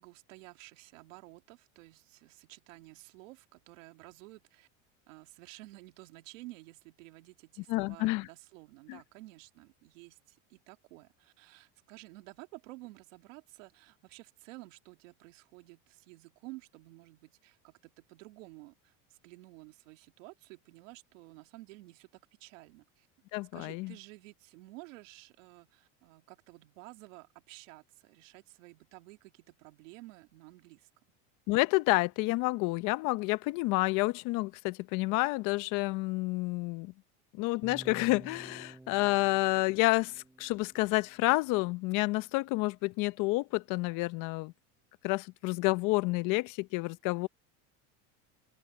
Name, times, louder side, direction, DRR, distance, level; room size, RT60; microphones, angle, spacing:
voice 1, 0.0-4.7 5.1-23.1 23.5-30.9, right 21 dB, 85° right, 2.5 m, -52 dB
voice 2, 7.7-8.3 8.9-9.0 23.3-23.9 31.5-36.9 37.4-44.5 45.0-47.3, left 23 dB, 55° left, 0.7 m, -29 dB
sound 1, 37.6-41.7, right 2 dB, 5° right, 0.6 m, -52 dB
open air
supercardioid pair, 140°, 38 cm